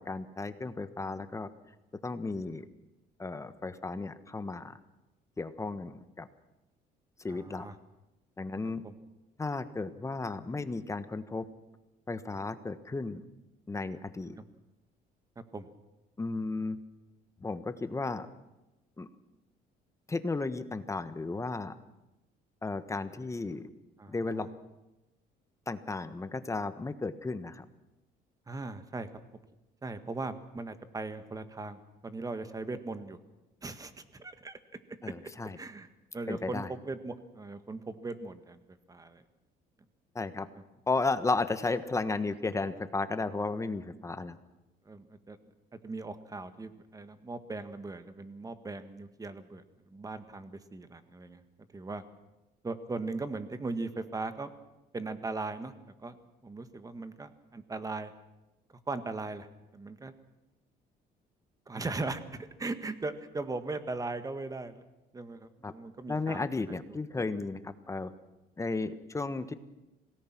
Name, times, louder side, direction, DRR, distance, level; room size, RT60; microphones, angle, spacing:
voice 1, 0.0-1.5 2.0-2.7 3.2-4.8 5.4-6.3 7.2-7.7 8.4-8.8 9.4-11.5 12.1-13.2 13.7-14.4 16.2-16.8 17.4-18.3 19.0-19.1 20.1-21.7 22.6-23.7 24.1-24.5 25.7-27.6 35.0-35.6 36.3-36.7 40.1-40.5 40.9-44.4 65.6-65.7 66.1-68.1 68.6-69.5, left 3 dB, 20° left, 11 dB, 1.4 m, -34 dB
voice 2, 7.3-7.8 8.8-8.9 14.4-14.5 15.5-15.7 24.0-24.5 28.5-29.1 29.8-33.2 33.6-34.6 35.6-35.9 36.1-38.6 38.9-39.2 40.6-40.7 44.9-45.4 45.7-51.4 51.7-52.0 52.6-54.5 54.9-55.7 56.0-56.2 56.4-58.1 58.9-59.5 59.7-60.1 61.7-64.8 65.1-67.0, right 3 dB, 20° right, 10 dB, 1.8 m, -39 dB
26.5 x 18.0 x 6.1 m, 0.99 s
cardioid pair, 110°, 17 cm